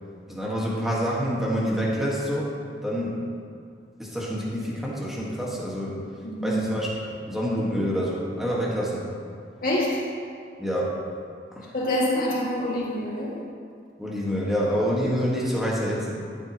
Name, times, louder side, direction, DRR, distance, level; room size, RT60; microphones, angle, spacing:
voice 1, 0.3-2.5 2.8-3.2 4.0-6.0 6.4-6.9 7.3-9.1 10.6-11.0 11.5-11.7 14.0-16.2, equal, ahead, -5 dB, 1.6 m, -27 dB
voice 2, 6.2-6.6 9.6-9.9 11.7-13.3, left 1 dB, 50° left, -5 dB, 2.1 m, -26 dB
13.5 x 7.9 x 3.0 m, 2.3 s
head